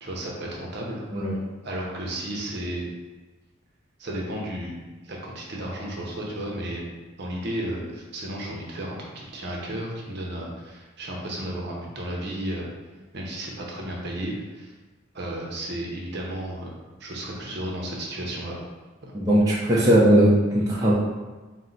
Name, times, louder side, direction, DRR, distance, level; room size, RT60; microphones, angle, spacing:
voice 1, 0.0-1.1 1.6-2.9 4.0-4.7 5.0-6.9 7.2-12.7 13.1-14.7 15.1-18.6, right 1 dB, 55° right, -2 dB, 0.8 m, -33 dB
voice 2, 19.1-20.9, right 1 dB, 20° right, -7 dB, 0.5 m, -19 dB
4.4 x 2.1 x 3.9 m, 1.3 s
head